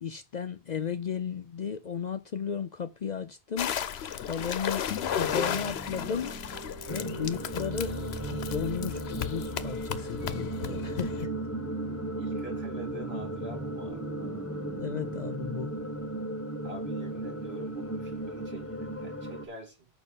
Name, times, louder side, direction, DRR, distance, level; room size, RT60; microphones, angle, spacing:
voice 1, 0.0-3.7 4.3-4.9 5.2-6.3 6.9-7.9 8.3-11.3 14.7-15.7, left 7 dB, 50° left, 0.6 m, -34 dB
sound 1, 3.6-11.2, left 9 dB, 75° left, 0.9 m, -34 dB
sound 2, 4.9-16.6, right 3 dB, 20° right, 0.6 m, -43 dB
sound 3, 6.9-19.5, right 1 dB, 15° left, 1.1 m, -36 dB
voice 2, 12.2-14.1 16.6-19.9, right 3 dB, 70° right, 3.2 m, -45 dB
6.6 x 5.6 x 6.8 m
omnidirectional pair, 1.1 m